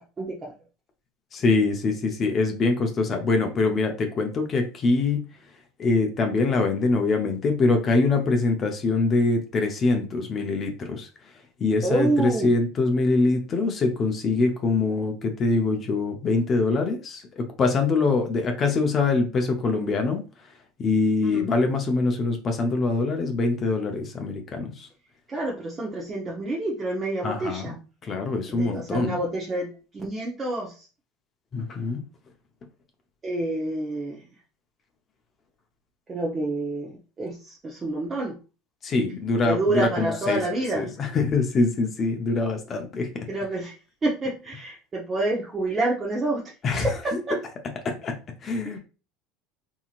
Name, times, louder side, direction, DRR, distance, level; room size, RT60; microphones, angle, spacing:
voice 1, 1.3-5.3 5.8-11.1 11.6-20.2 20.8-24.9 27.2-29.2 31.5-32.1 38.8-40.4 40.7-43.3 46.6-47.2 47.8-48.8, left 3 dB, 40° left, 4 dB, 0.6 m, -24 dB
voice 2, 11.8-12.5 21.2-21.5 25.3-27.8 28.5-30.9 33.2-34.2 36.1-38.4 39.4-40.9 43.3-43.8 44.0-46.4 46.7-47.4, right 2 dB, 30° right, -2 dB, 0.7 m, -28 dB
2.8 x 2.8 x 2.4 m, 0.33 s
hypercardioid pair, 90°, 0 cm